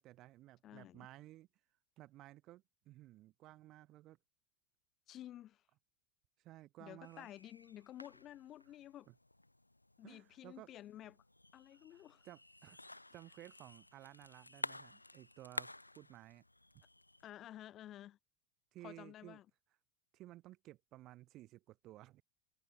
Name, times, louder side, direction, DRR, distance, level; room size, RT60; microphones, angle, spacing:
voice 1, 0.0-1.5 2.0-4.2 6.4-7.3 9.1-9.2 10.0-10.7 11.7-16.4 18.7-19.4 20.1-22.2, right 16 dB, 40° right, 3.6 m, -56 dB
voice 2, 0.6-1.1 5.1-5.6 6.8-9.1 10.0-11.2 11.5-12.2 17.2-18.2 18.8-19.5, left 12 dB, 35° left, 2.1 m, -52 dB
sound 1, 7.0-17.3, left 2 dB, 85° left, 1.0 m, -51 dB
figure-of-eight pair, 80°, 0 cm